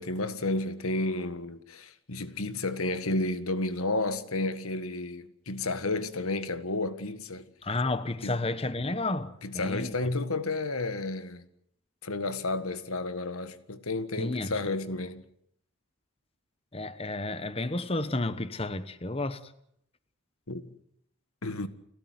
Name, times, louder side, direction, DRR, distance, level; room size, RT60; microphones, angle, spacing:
voice 1, 0.0-7.5 8.2-8.4 9.4-11.5 12.0-15.2 20.5-20.7 21.4-21.7, left 2 dB, 85° left, 1.7 m, -31 dB
voice 2, 7.6-9.9 14.2-14.5 16.7-19.4, left 2 dB, 25° left, 1.1 m, -31 dB
30.0 x 13.5 x 9.5 m
head